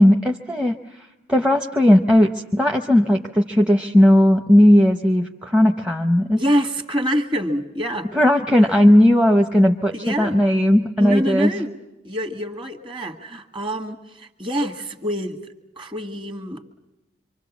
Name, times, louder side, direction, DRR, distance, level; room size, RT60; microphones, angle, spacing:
voice 1, 0.0-6.4 8.1-11.5, left 1 dB, 5° right, 3 dB, 0.8 m, -16 dB
voice 2, 6.4-8.1 9.9-10.4 11.0-11.8 12.0-15.4 15.8-16.6, equal, 25° right, 6 dB, 1.7 m, -26 dB
26.5 x 25.0 x 7.2 m, 0.99 s
head